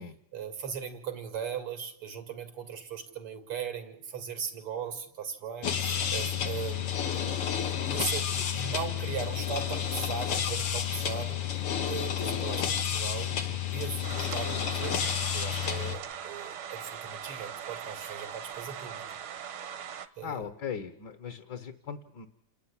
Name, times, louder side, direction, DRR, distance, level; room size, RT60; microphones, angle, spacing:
voice 1, 0.3-6.9 7.6-11.4 11.8-19.1 20.2-20.4, right 7 dB, 90° right, 7 dB, 3.1 m, -38 dB
sound 1, 5.6-16.0, left 9 dB, 85° left, 2.6 m, -31 dB
sound 2, 14.0-20.1, right 8 dB, 70° right, 1.9 m, -40 dB
voice 2, 20.2-22.3, left 7 dB, 55° left, 9 dB, 1.8 m, -38 dB
28.5 x 12.0 x 9.9 m, 0.84 s
omnidirectional pair, 2.4 m